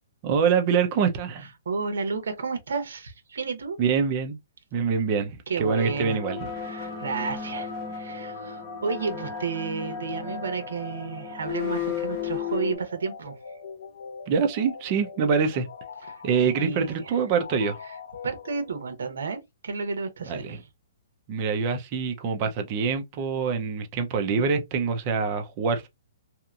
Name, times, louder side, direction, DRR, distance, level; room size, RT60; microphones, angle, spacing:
voice 1, 0.2-1.5 3.8-4.4 4.7-6.5 14.3-15.7 16.2-17.8 20.3-20.6 21.3-25.9, right 6 dB, 30° right, 0.5 m, -25 dB
voice 2, 1.6-3.8 5.5-6.2 6.6-13.3 16.1-17.2 18.2-20.7, right 5 dB, 85° right, 0.9 m, -32 dB
sound 1, 5.6-12.8, left 7 dB, 20° left, 1.4 m, -34 dB
sound 2, 8.3-19.1, left 5 dB, 80° left, 0.7 m, -44 dB
2.8 x 2.5 x 2.3 m
hypercardioid pair, 165°, 0 cm